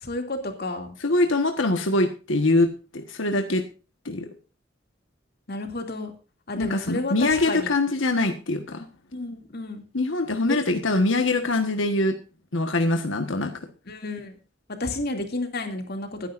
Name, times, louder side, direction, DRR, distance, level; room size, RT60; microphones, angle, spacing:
voice 1, 0.0-1.0 5.5-6.1 6.5-7.7 9.1-9.8 10.5-10.6 13.9-14.4 14.8-16.3, left 2 dB, 55° left, 4 dB, 2.5 m, -31 dB
voice 2, 1.0-3.6 4.0-4.3 6.6-8.8 9.9-12.2 12.5-13.5, left 2 dB, 90° left, 5 dB, 1.4 m, -23 dB
21.0 x 10.5 x 2.6 m, 0.33 s
head